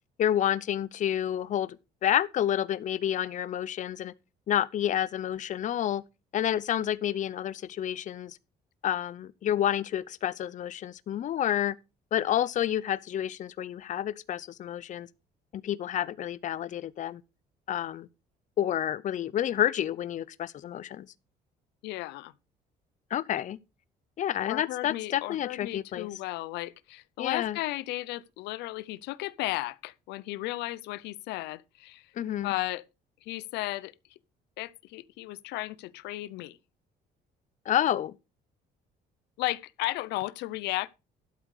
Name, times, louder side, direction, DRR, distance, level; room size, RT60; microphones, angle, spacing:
voice 1, 0.2-1.8 2.0-4.1 4.5-6.0 6.3-8.4 8.8-11.8 12.1-15.1 15.5-17.2 17.7-18.1 18.6-21.1 23.1-23.6 24.2-26.1 27.2-27.6 32.2-32.5 37.7-38.1, left 11 dB, 45° left, 0.6 m, -29 dB
voice 2, 21.8-22.3 24.4-32.1 32.4-32.8 33.2-33.9 34.6-36.6 39.4-40.9, left 18 dB, 85° left, 0.6 m, -34 dB
12.0 x 7.5 x 4.8 m
cardioid pair, 110°, 17 cm